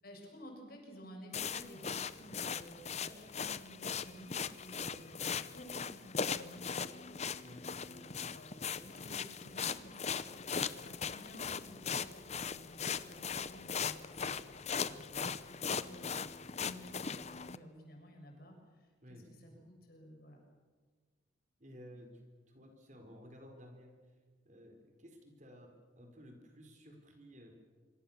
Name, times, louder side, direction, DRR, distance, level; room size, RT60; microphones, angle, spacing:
voice 1, 0.0-20.4, equal, 50° left, 1 dB, 7.3 m, -54 dB
sound 1, 1.3-17.6, left 6 dB, 35° left, 0.8 m, -39 dB
voice 2, 19.0-19.6 21.6-23.9 24.4-27.6, equal, 40° right, 4 dB, 4.6 m, -55 dB
26.0 x 25.5 x 7.4 m, 1.5 s
head